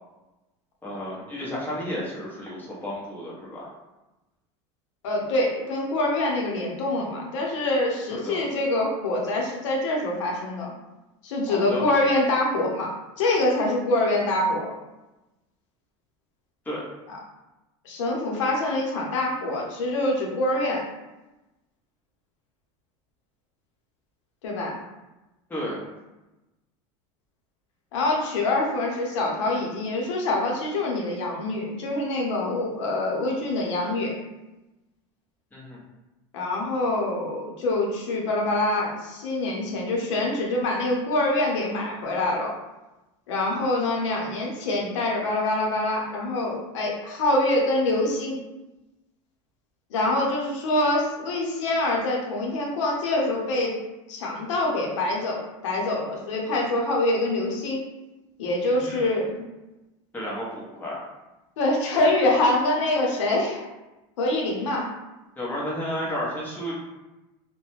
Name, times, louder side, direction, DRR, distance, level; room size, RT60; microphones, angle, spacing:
voice 1, 0.8-3.7 8.1-8.4 11.5-11.9 16.7-16.8 25.5-25.8 35.5-35.8 58.6-59.2 60.1-61.0 65.4-66.7, equal, 10° left, -6 dB, 0.9 m, -32 dB
voice 2, 5.0-10.7 11.2-12.9 13.2-14.7 17.1-17.2 17.8-20.8 24.4-24.8 27.9-34.1 36.3-42.5 43.3-48.4 49.9-53.7 54.1-57.8 58.4-59.5 61.6-63.7 64.2-64.9, left 2 dB, 90° left, -1 dB, 0.7 m, -25 dB
2.4 x 2.1 x 3.0 m, 1.0 s
supercardioid pair, 120°, 15 cm